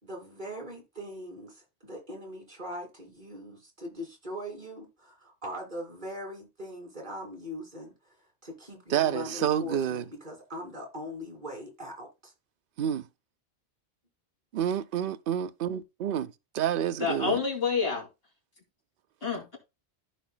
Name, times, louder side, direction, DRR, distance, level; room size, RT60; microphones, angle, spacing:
voice 1, 0.0-7.9 8.4-12.3, equal, 45° right, 2.8 m, -41 dB
voice 2, 8.9-10.1 12.8-13.1 14.5-17.4, right 9 dB, 60° right, 0.7 m, -29 dB
voice 3, 17.0-18.1 19.2-19.6, left 5 dB, 60° left, 3.0 m, -28 dB
14.5 x 4.9 x 2.2 m
omnidirectional pair, 1.1 m